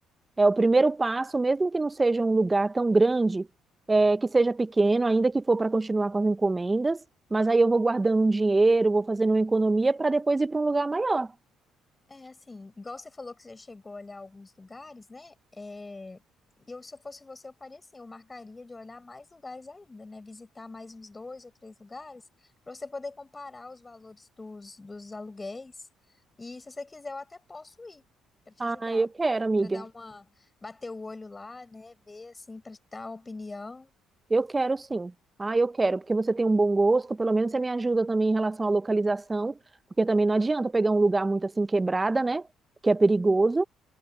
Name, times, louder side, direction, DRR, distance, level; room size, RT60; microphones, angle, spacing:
voice 1, 0.4-3.5 3.9-7.0 7.3-11.3 28.6-29.8 34.3-35.1 35.4-39.6 40.0-42.4 42.8-43.6, right 3 dB, 20° right, 0.7 m, -24 dB
voice 2, 12.1-16.2 16.6-22.2 22.7-25.9 26.4-28.0 28.5-29.1 29.6-33.9, left 3 dB, 20° left, 7.5 m, -43 dB
cardioid pair, 90°, 0 cm